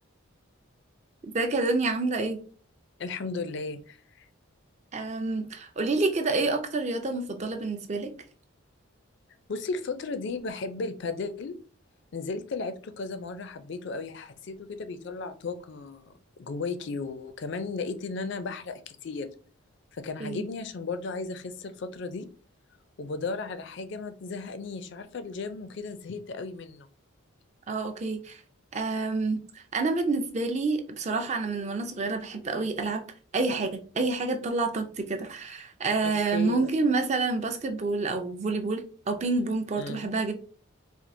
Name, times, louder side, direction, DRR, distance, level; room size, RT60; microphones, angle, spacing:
voice 1, 1.2-2.4 4.9-8.1 20.2-20.4 27.7-28.4 28.7-33.1 33.3-40.3, right 3 dB, 35° right, 0.4 m, -28 dB
voice 2, 3.0-4.3 9.5-11.5 12.1-16.1 16.4-19.3 19.9-22.3 23.0-26.9 36.0-36.7 39.8-40.1, left 4 dB, 55° left, 0.4 m, -35 dB
4.3 x 2.4 x 2.6 m
head